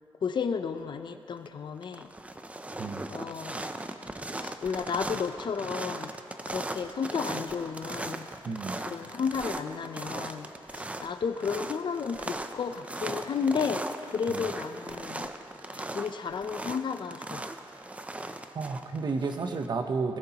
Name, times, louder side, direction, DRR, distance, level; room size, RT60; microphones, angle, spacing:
voice 1, 0.2-2.1 3.1-3.7 4.3-6.1 6.5-8.3 8.8-15.3 15.7-17.5, left 6 dB, 55° left, 9 dB, 0.5 m, -33 dB
sound 1, 1.1-1.5 1.8-19.7, right 2 dB, 15° right, 0.4 m, -38 dB
voice 2, 8.4-8.8 14.3-14.5 18.5-20.2, right 4 dB, 45° right, 6 dB, 0.8 m, -32 dB
20.0 x 13.0 x 2.9 m, 2.7 s
wide cardioid pair, 150°, 10 cm